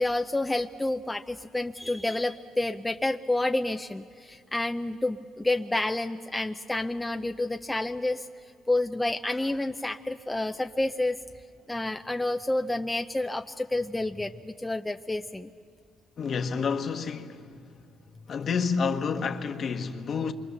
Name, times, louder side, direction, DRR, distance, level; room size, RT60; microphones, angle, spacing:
voice 1, 0.0-8.3 8.7-11.2 11.7-15.5, left 2 dB, 10° left, 0.6 m, -29 dB
voice 2, 16.2-17.7 18.3-20.3, left 5 dB, 50° left, 1.5 m, -29 dB
27.0 x 24.5 x 6.8 m
supercardioid pair, 80°, 0 cm